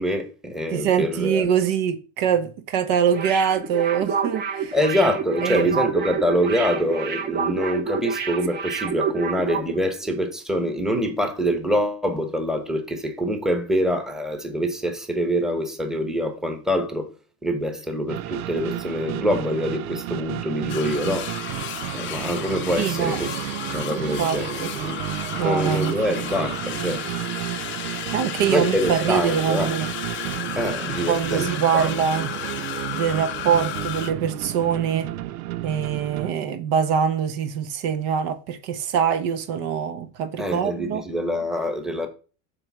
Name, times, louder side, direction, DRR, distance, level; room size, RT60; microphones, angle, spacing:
voice 1, 0.0-1.5 4.7-17.1 17.4-21.3 21.9-23.4 23.7-25.1 25.4-27.0 28.5-29.8 30.5-31.9 40.4-42.1, equal, ahead, 1.1 m, -25 dB
voice 2, 0.7-4.8 5.4-5.8 22.8-23.5 23.9-24.7 25.4-26.4 28.1-29.9 31.1-32.3 32.9-35.1 35.6-41.0, right 8 dB, 55° right, 1.0 m, -24 dB
sound 1, 3.1-9.7 10.0-10.1, right 6 dB, 25° right, 0.9 m, -28 dB
sound 2, 18.1-36.3, right 15 dB, 90° right, 0.6 m, -32 dB
sound 3, 20.7-34.1, left 12 dB, 30° left, 0.5 m, -33 dB
7.9 x 3.4 x 6.1 m
supercardioid pair, 135°, 41 cm